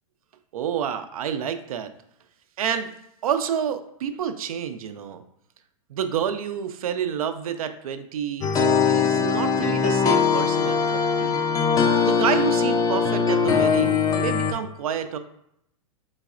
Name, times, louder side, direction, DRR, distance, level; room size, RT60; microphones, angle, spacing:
voice 1, 0.5-1.9 2.6-2.9 3.2-5.2 5.9-8.5 8.8-11.4 12.0-15.2, right 8 dB, 80° right, 9 dB, 0.4 m, -29 dB
sound 1, 8.4-14.5, left 6 dB, 20° left, 0.4 m, -21 dB
4.0 x 3.1 x 2.4 m, 0.76 s
hypercardioid pair, 105°, 18 cm